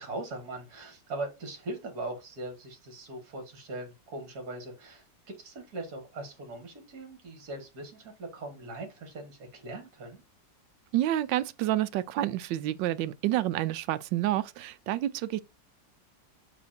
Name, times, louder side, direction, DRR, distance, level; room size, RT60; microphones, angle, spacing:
voice 1, 0.0-10.2, right 2 dB, 60° right, 2.3 m, -40 dB
voice 2, 10.9-15.4, right 13 dB, 85° right, 1.3 m, -29 dB
9.1 x 3.2 x 4.2 m
omnidirectional pair, 2.0 m